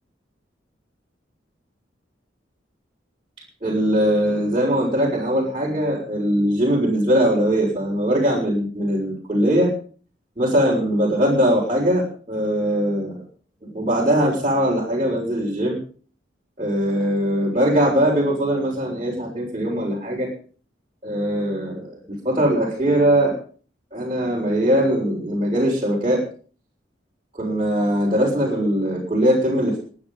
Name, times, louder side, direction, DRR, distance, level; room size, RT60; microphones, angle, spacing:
voice 1, 3.6-9.7 10.4-13.2 13.6-15.8 16.6-20.3 21.0-21.9 22.2-23.3 23.9-26.2 27.3-29.8, equal, 30° right, -6 dB, 6.5 m, -21 dB
25.0 x 9.9 x 5.6 m, 0.43 s
head